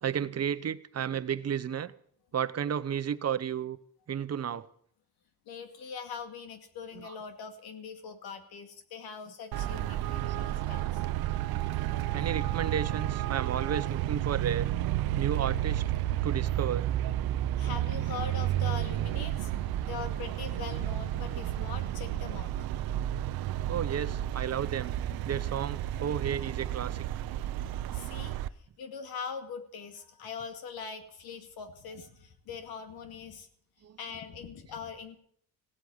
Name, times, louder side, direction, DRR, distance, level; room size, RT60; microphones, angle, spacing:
voice 1, 0.0-1.9 2.3-3.8 4.1-4.7 6.9-7.2 10.2-10.4 12.1-14.7 15.2-15.8 16.2-16.9 23.7-24.9 25.2-27.2 33.8-34.2, right 8 dB, 45° right, 15 dB, 0.9 m, -33 dB
voice 2, 5.5-11.0 17.6-19.5 19.8-22.5 27.9-33.5 34.0-35.2, left 6 dB, 80° left, 8 dB, 2.3 m, -42 dB
Traffic noise roadway noise, 9.5-28.5, right 13 dB, 75° right, 0.7 m, -31 dB
16.5 x 8.3 x 9.6 m, 0.63 s
cardioid pair, 85°, 37 cm